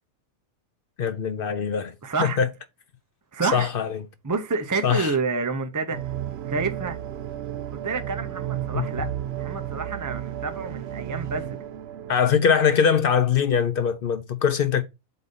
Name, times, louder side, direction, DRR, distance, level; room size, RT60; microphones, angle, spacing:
voice 1, 1.0-1.9 2.2-2.5 3.5-4.0 4.8-5.1 8.7-8.8 12.1-14.8, left 7 dB, 60° left, 0.6 m, -22 dB
voice 2, 2.0-2.4 3.3-3.7 4.2-6.0 6.5-7.0 7.7-9.1 9.4-11.6, right 4 dB, 30° right, 0.3 m, -28 dB
sound 1, 5.9-12.1, right 11 dB, 60° right, 0.8 m, -33 dB
7.9 x 2.7 x 5.2 m
omnidirectional pair, 1.5 m